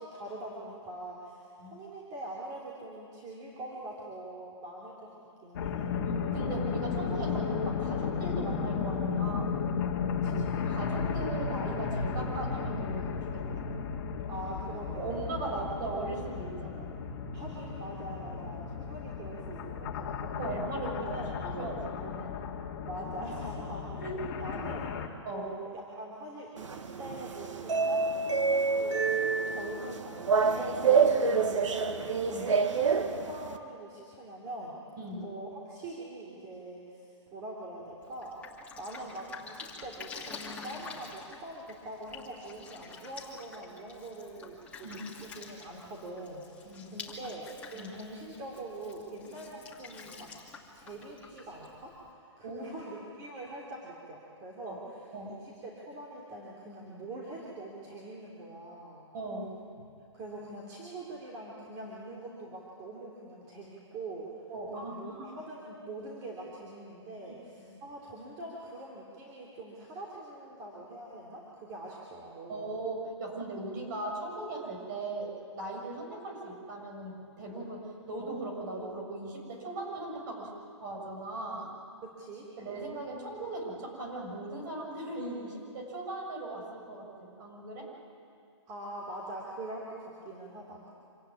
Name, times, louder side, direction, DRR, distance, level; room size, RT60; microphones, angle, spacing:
voice 1, 0.0-5.8 10.1-10.5 14.3-15.1 15.5-15.6 17.3-20.2 21.1-21.2 21.6-21.7 22.9-23.9 24.4-24.9 25.3-30.9 31.6-34.8 35.2-44.9 45.2-50.3 50.7-59.1 60.1-64.4 64.7-72.7 82.0-82.4 88.7-90.9, right 2 dB, 20° right, -4 dB, 3.2 m, -43 dB
sound 1, 5.5-25.1, left 6 dB, 35° left, 2.1 m, -34 dB
voice 2, 6.1-9.6 10.5-13.5 15.0-16.9 20.4-22.4 23.2-23.3 24.0-24.2 24.5-24.7 25.2-25.5 30.8-31.7 32.3-32.4 35.0-35.2 44.8-45.0 46.6-47.0 47.7-47.9 52.4-52.6 54.6-54.8 55.1-55.4 59.1-59.8 64.5-65.3 67.3-67.8 72.5-80.5 80.8-81.7 82.6-87.9, right 2 dB, 40° right, 0 dB, 7.0 m, -38 dB
sound 2, 26.6-33.6, right 5 dB, 85° right, 1.8 m, -27 dB
Drip, 38.0-52.1, left 4 dB, 10° left, 2.4 m, -48 dB
26.5 x 16.5 x 9.6 m, 2.4 s
hypercardioid pair, 165°, 16 cm